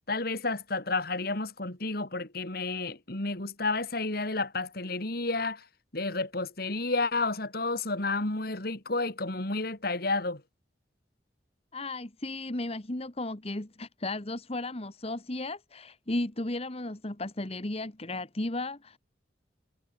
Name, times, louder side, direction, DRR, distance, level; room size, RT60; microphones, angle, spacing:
voice 1, 0.1-5.6 5.9-10.4, left 3 dB, 55° left, 2.9 m, -31 dB
voice 2, 11.7-19.0, left 2 dB, 35° left, 1.5 m, -35 dB
head